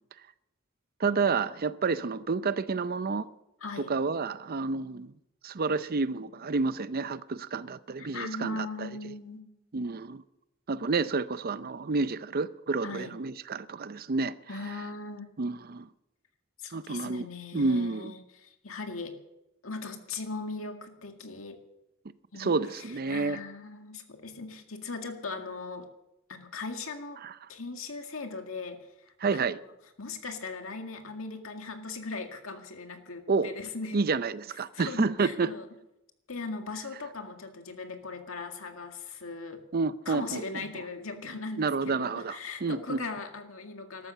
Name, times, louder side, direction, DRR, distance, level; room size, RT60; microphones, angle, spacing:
voice 1, 1.0-3.3 3.8-5.1 5.4-8.9 9.7-10.2 10.7-14.3 15.4-15.9 16.7-17.3 17.5-18.1 22.3-23.4 27.2-27.3 29.2-29.6 33.3-33.5 33.9-35.5 39.7-40.4 41.6-43.0, right 4 dB, 45° right, 0.6 m, -29 dB
voice 2, 3.6-4.0 8.0-9.4 12.8-13.1 14.5-15.3 16.6-19.2 19.6-21.6 22.3-25.9 26.3-27.2 27.5-28.8 29.3-29.4 30.0-34.0 34.7-35.7 36.3-39.6 40.1-44.1, left 3 dB, 80° left, 2.1 m, -39 dB
13.5 x 13.0 x 6.7 m
head